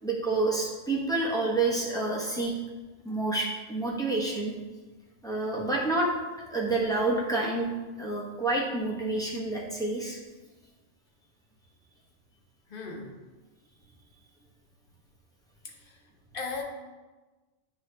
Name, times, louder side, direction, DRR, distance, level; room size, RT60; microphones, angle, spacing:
voice 1, 0.0-2.5 3.0-4.5 5.2-6.1 6.4-7.7 8.0-10.2, right 2 dB, 5° left, -4 dB, 0.9 m, -28 dB
voice 2, 12.7-13.2 15.6-16.0 16.3-16.6, left 4 dB, 50° left, 0 dB, 1.0 m, -38 dB
9.1 x 3.2 x 3.2 m, 1.2 s
omnidirectional pair, 1.3 m